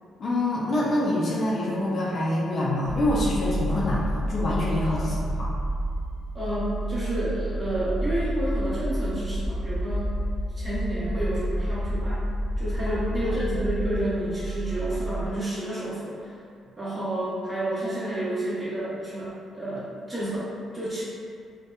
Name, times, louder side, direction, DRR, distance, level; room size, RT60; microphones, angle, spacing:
voice 1, 0.2-5.5 12.9-13.0, left 1 dB, 55° left, -5 dB, 0.4 m, -26 dB
sound 1, 2.8-15.3, right 1 dB, 45° right, 0.6 m, -29 dB
voice 2, 6.3-10.2 10.6-12.3 12.6-16.4 16.8-19.3 19.5-21.0, right 1 dB, 20° right, -10 dB, 1.0 m, -30 dB
2.7 x 2.1 x 2.3 m, 2.3 s
cardioid pair, 90°, 0 cm